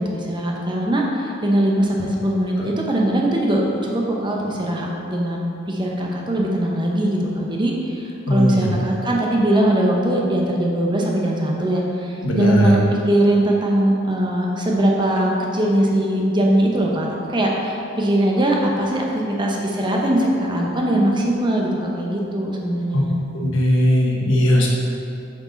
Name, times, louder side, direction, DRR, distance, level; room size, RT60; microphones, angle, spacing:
voice 1, 0.0-23.1, right 1 dB, 25° right, -2 dB, 0.9 m, -21 dB
voice 2, 8.3-8.7 12.2-12.7 22.9-23.0 23.3-24.7, left 1 dB, 85° left, -2 dB, 1.2 m, -18 dB
7.6 x 4.6 x 4.0 m, 2.7 s
head